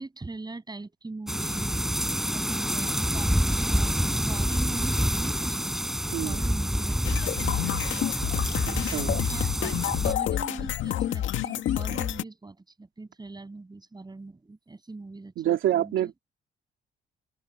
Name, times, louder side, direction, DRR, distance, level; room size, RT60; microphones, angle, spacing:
voice 1, 0.0-5.7 6.2-8.0 8.6-16.1, right 3 dB, 20° right, 7.7 m, -41 dB
sound 1, 1.3-10.1, equal, ahead, 5.0 m, -27 dB
sound 2, 7.0-12.2, left 11 dB, 80° left, 2.0 m, -29 dB
voice 2, 8.7-9.1 15.4-16.2, right 12 dB, 80° right, 2.9 m, -27 dB
open air
cardioid pair, 90°, 20 cm